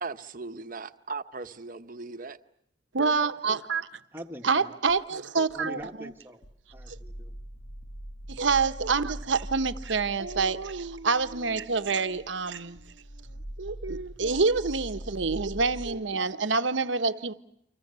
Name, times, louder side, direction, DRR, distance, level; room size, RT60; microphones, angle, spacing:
voice 1, 0.0-2.4, right 4 dB, 45° right, 1.0 m, -38 dB
voice 2, 2.9-3.9 4.4-6.1 6.9-7.0 8.3-12.8 13.6-17.3, right 4 dB, 70° right, 1.0 m, -27 dB
voice 3, 4.1-4.7 5.5-6.4 6.7-7.3, equal, 10° right, 1.5 m, -42 dB
sound 1, 4.9-5.0 5.5-6.1 6.4-15.9, right 1 dB, 70° left, 2.1 m, -42 dB
29.5 x 25.5 x 6.8 m
head